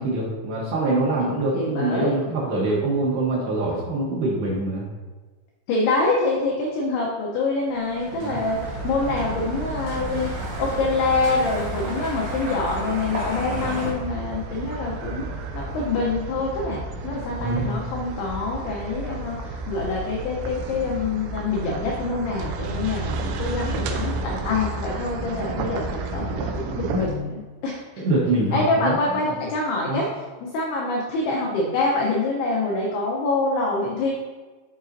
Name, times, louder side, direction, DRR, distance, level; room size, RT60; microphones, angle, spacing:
voice 1, 0.0-4.9 8.1-8.4 13.5-13.9 17.4-17.7 25.6-25.8 28.0-29.0 29.9-30.0, right 2 dB, 70° right, -5 dB, 2.6 m, -24 dB
voice 2, 1.5-2.2 5.7-15.3 15.5-25.8 26.1-27.8 28.5-30.1 30.4-34.1, left 3 dB, 85° left, -2 dB, 2.3 m, -25 dB
sound 1, 7.6-13.9, right 1 dB, 50° right, 1.6 m, -34 dB
sound 2, 8.6-27.1, right 3 dB, 90° right, 2.5 m, -32 dB
12.0 x 4.1 x 2.6 m, 1.3 s
omnidirectional pair, 5.7 m